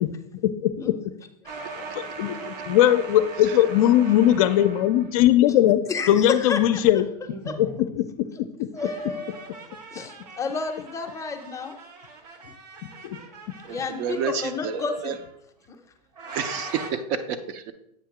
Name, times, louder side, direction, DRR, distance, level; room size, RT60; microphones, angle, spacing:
voice 1, 0.4-1.0 1.8-5.8 6.1-7.1 7.6-8.7 13.0-13.2 13.5-13.6, left 12 dB, 55° left, 11 dB, 0.5 m, -20 dB
sound 1, 1.5-5.3 7.2-7.9 8.8-15.3 16.2-16.9, right 4 dB, 75° right, 1.2 m, -40 dB
voice 2, 5.9-6.8 7.5-7.6 8.7-9.5 9.9-11.7 13.7-15.1, left 4 dB, 15° left, 4 dB, 0.7 m, -31 dB
voice 3, 13.6-15.1 16.3-17.7, right 7 dB, 45° right, 9 dB, 0.7 m, -30 dB
7.9 x 2.8 x 6.0 m, 0.76 s
hypercardioid pair, 125°, 21 cm